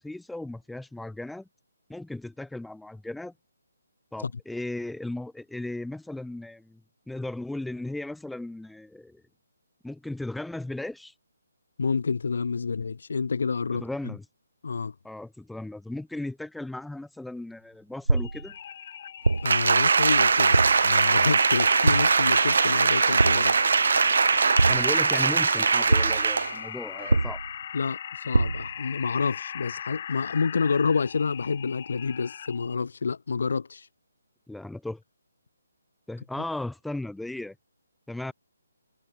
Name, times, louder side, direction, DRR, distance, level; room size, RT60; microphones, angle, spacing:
voice 1, 0.0-1.5 1.9-3.3 4.1-6.8 7.1-9.2 9.8-11.1 13.7-14.2 15.0-18.6 24.7-27.4 34.5-35.0 36.1-37.5 38.1-38.3, left 2 dB, ahead, 1.2 m, -36 dB
voice 2, 11.8-14.1 14.6-14.9 19.4-20.6 20.8-23.5 27.7-33.9, left 5 dB, 60° left, 0.6 m, -28 dB
sound 1, 18.1-18.5 19.2-19.7 20.5-20.9 21.9-22.3 23.2-23.6 24.6-25.1 25.9-26.3 27.1-27.6 28.3-28.8, right 2 dB, 75° right, 0.4 m, -24 dB
sound 2, 18.2-32.8, left 9 dB, 40° left, 3.4 m, -38 dB
Applause, 19.4-26.6 27.0-27.1, right 5 dB, 60° right, 0.8 m, -21 dB
figure-of-eight pair, 140°, 0 cm